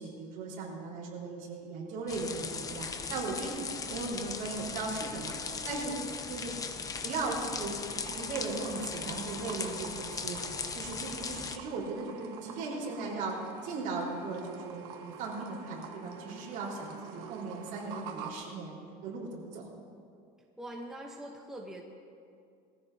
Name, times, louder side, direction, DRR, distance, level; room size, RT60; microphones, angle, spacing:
voice 1, 0.0-5.3 5.6-6.0 6.3-6.5 7.0-7.7 8.1-10.4 10.7-19.7, right 3 dB, 55° right, -3 dB, 4.2 m, -37 dB
sound 1, 2.1-11.6, left 5 dB, 20° left, 0.7 m, -38 dB
voice 2, 3.1-3.5 20.6-21.8, right 1 dB, 5° right, -1 dB, 0.9 m, -44 dB
Keurig kcup brewing, 7.9-18.3, right 7 dB, 70° right, 1.4 m, -47 dB
21.0 x 15.0 x 2.8 m, 2.4 s
cardioid pair, 160°, 17 cm